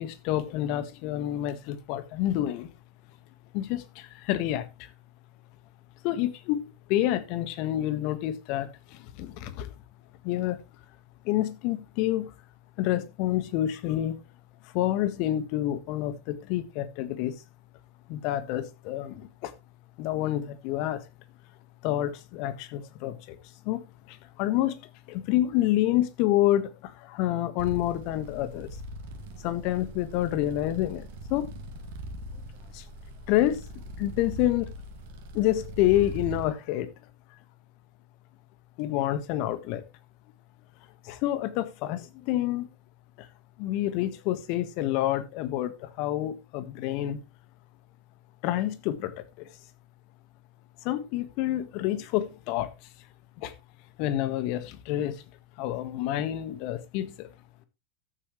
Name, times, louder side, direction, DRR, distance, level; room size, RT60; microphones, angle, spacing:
voice 1, 0.0-2.7 3.5-4.9 6.0-9.7 10.2-10.6 11.2-12.3 12.8-14.2 14.6-17.3 18.1-19.5 20.0-21.0 21.8-23.4 23.6-23.8 24.1-24.8 25.1-28.7 29.4-31.5 32.7-32.8 33.3-33.7 34.0-34.7 35.3-36.9 38.8-39.8 41.0-42.7 43.2-43.3 43.6-47.2 48.4-49.5 50.8-52.7 53.4-53.5 54.0-55.2 55.6-57.3, left 13 dB, 50° left, 1.5 m, -28 dB
sound 1, 27.6-36.5, equal, 60° right, 2.2 m, -41 dB
14.0 x 8.3 x 3.2 m
figure-of-eight pair, 85°, 0 cm